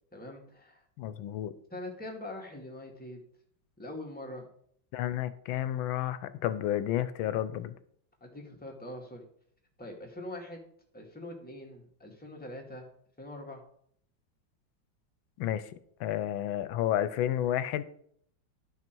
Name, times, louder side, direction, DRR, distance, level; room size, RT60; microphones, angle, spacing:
voice 1, 0.1-0.8 1.7-3.2 3.8-4.5 8.2-9.2 9.8-10.7 10.9-12.9 13.2-13.6, left 1 dB, 5° left, 0 dB, 1.7 m, -43 dB
voice 2, 1.0-1.5 4.9-7.7 15.4-15.6 16.0-17.8, left 12 dB, 85° left, 14 dB, 1.4 m, -31 dB
11.5 x 6.1 x 4.5 m, 0.64 s
omnidirectional pair, 2.1 m